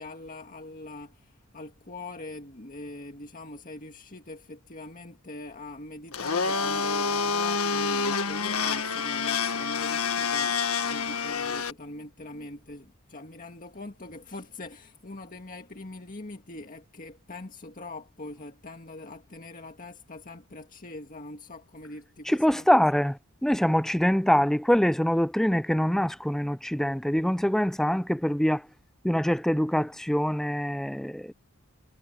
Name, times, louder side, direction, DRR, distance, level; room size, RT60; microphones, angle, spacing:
voice 1, 0.0-22.7, left 2 dB, 40° left, 2.0 m, -43 dB
Domestic sounds home sounds, 6.1-11.7, left 5 dB, 80° left, 1.6 m, -27 dB
voice 2, 22.3-28.7 29.0-31.3, equal, ahead, 0.4 m, -24 dB
head